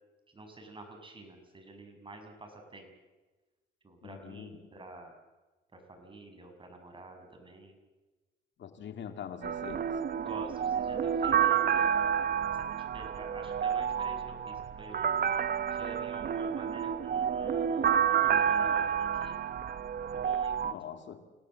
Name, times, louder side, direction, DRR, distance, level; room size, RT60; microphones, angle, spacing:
voice 1, 0.3-2.9 3.8-5.1 5.7-7.7 10.2-12.6 12.9-15.2 15.7-19.5 20.1-20.5, right 2 dB, 25° right, 4 dB, 6.9 m, -48 dB
voice 2, 4.0-4.7 8.6-9.9 20.6-21.3, left 8 dB, 65° left, 7 dB, 2.5 m, -43 dB
sound 1, 9.4-20.7, right 8 dB, 50° right, 1.0 m, -29 dB
28.5 x 18.0 x 7.8 m, 1.2 s
cardioid pair, 90°, 20 cm